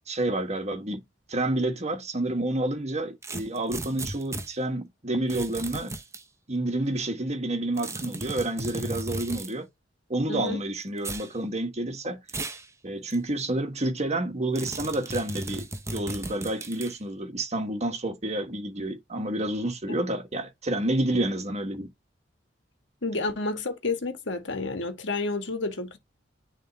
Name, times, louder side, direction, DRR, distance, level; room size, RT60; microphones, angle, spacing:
voice 1, 0.1-1.0 1.3-5.9 6.5-9.7 10.1-12.2 12.8-21.9, right 1 dB, 35° right, 1.5 m, -29 dB
sound 1, 3.2-4.5 5.3-6.2 7.8-9.5 11.0-11.3 12.3-12.7 13.1-13.2 14.6-16.9, right 2 dB, 15° right, 0.9 m, -35 dB
voice 2, 10.3-10.6 23.0-26.0, left 3 dB, 70° left, 1.7 m, -30 dB
10.0 x 3.6 x 2.8 m
head